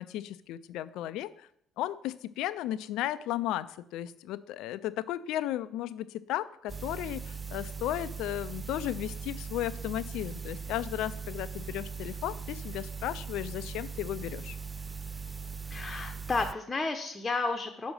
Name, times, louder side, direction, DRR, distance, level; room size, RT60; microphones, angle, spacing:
voice 1, 0.0-1.5 1.8-14.6, left 13 dB, 65° left, 15 dB, 0.4 m, -35 dB
sound 1, 6.7-16.5, right 5 dB, 25° right, 0.3 m, -40 dB
voice 2, 15.7-17.9, left 3 dB, 25° left, 4 dB, 0.8 m, -32 dB
6.2 x 5.1 x 6.3 m, 0.71 s
figure-of-eight pair, 50°, 0 cm